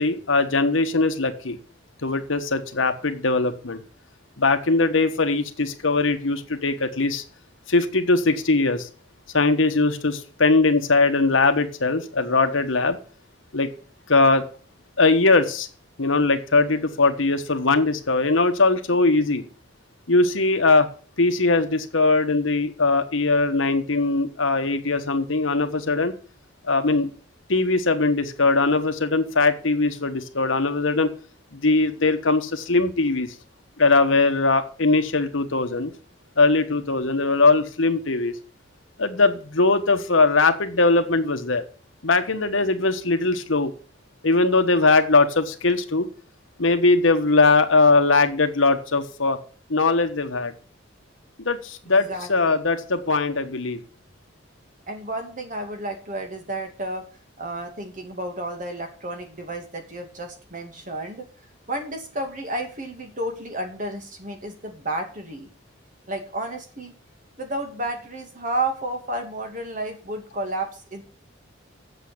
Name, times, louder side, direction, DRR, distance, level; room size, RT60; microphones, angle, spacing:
voice 1, 0.0-1.6 2.0-3.8 4.4-7.2 7.7-8.9 9.3-13.0 13.5-13.7 14.1-14.5 15.0-15.7 16.0-19.4 20.1-20.9 21.2-26.1 26.6-27.1 27.5-31.1 31.5-33.3 33.8-35.9 36.4-38.3 39.0-41.6 42.0-43.7 44.2-46.1 46.6-49.4 49.7-50.5 51.4-53.8, left 3 dB, 80° left, 7 dB, 1.4 m, -20 dB
voice 2, 52.1-52.6 54.9-57.0 57.4-61.3 61.7-65.5 66.1-66.9 67.4-71.0, right 1 dB, 40° right, 4 dB, 2.5 m, -31 dB
8.1 x 7.4 x 8.6 m, 0.40 s
head